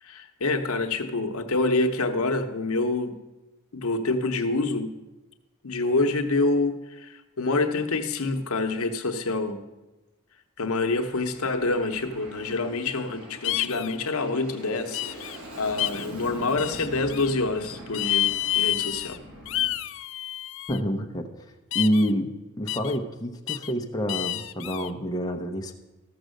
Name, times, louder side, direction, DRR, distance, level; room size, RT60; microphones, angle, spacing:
voice 1, 0.0-3.1 3.7-4.9 5.6-9.6 10.6-19.2, left 3 dB, 75° left, 6 dB, 0.9 m, -27 dB
Aircraft, 10.8-19.7, right 1 dB, 75° right, 2.5 m, -43 dB
sound 1, 13.4-14.0 14.9-15.4 15.8-16.1 16.6-17.3 17.9-19.2 19.5-20.8 21.7-22.1 22.7-23.0 23.5-23.7 24.1-24.9, left 14 dB, 55° left, 0.4 m, -29 dB
voice 2, 20.7-21.3 21.7-22.3 22.6-25.8, equal, 15° left, 2 dB, 0.7 m, -27 dB
13.5 x 6.3 x 6.4 m, 1.1 s
head